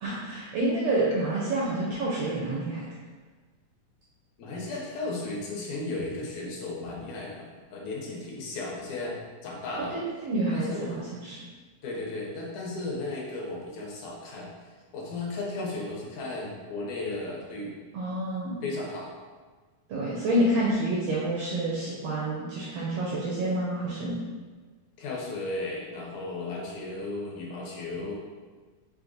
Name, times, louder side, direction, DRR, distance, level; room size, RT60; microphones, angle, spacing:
voice 1, 0.0-2.9 10.2-11.4 17.9-18.6 19.9-24.1, right 1 dB, 75° right, -5 dB, 1.4 m, -28 dB
voice 2, 4.4-9.2 9.4-10.0 10.5-11.0 11.8-14.5 14.9-17.8 18.6-19.1 25.0-28.2, left 2 dB, 75° left, -3 dB, 2.2 m, -35 dB
5.4 x 2.5 x 3.9 m, 1.4 s
omnidirectional pair, 3.5 m